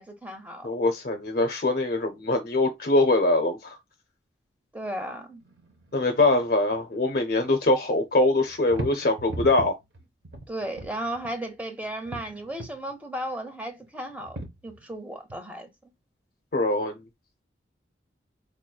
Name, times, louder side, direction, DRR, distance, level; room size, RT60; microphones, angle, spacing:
voice 1, 0.0-0.7 4.7-5.4 10.5-14.4 14.6-15.9, right 1 dB, 10° right, 0.7 m, -35 dB
voice 2, 0.6-3.8 5.9-9.8 16.5-17.0, left 2 dB, 50° left, 0.5 m, -23 dB
sound 1, 5.4-6.8 7.1-7.9 8.3-11.5 11.8-12.9 13.8-14.9 15.3-15.4, right 1 dB, 70° right, 0.9 m, -39 dB
4.6 x 3.0 x 2.3 m
head